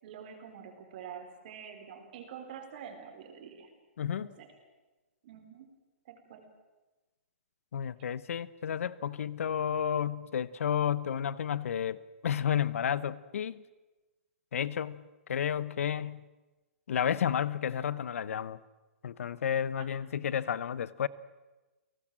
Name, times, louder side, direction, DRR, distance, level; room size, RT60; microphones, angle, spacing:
voice 1, 0.0-3.7 4.1-4.5 5.2-5.7 6.0-6.5 19.8-19.9, right 7 dB, 40° right, 4.2 m, -47 dB
voice 2, 4.0-4.4 7.7-13.6 14.5-15.0 15.3-16.2 16.9-18.6 19.0-21.1, left 8 dB, 75° left, 0.9 m, -31 dB
30.0 x 18.5 x 7.6 m
hypercardioid pair, 170°, 8 cm